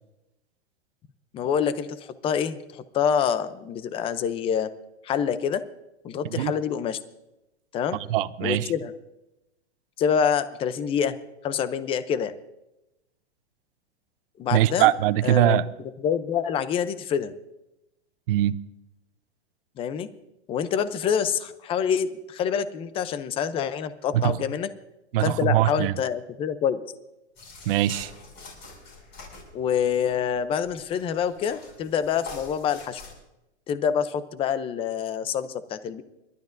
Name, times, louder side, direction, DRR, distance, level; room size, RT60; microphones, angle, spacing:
voice 1, 1.3-4.7 5.0-5.6 6.0-7.0 7.7-8.0 8.4-8.9 10.0-11.2 11.4-12.3 14.4-14.9 15.2-15.6 16.0-17.3 19.8-20.1 20.5-24.7 25.2-26.8 29.5-33.0 33.7-36.0, left 8 dB, 15° left, 0.5 m, -26 dB
voice 2, 7.9-8.7 14.5-15.7 18.3-18.6 24.1-24.4 25.1-25.9 27.7-28.1, right 13 dB, 55° right, 0.6 m, -22 dB
sound 1, 27.4-33.1, left 3 dB, 30° left, 6.3 m, -46 dB
30.0 x 12.0 x 2.6 m
hypercardioid pair, 145°, 34 cm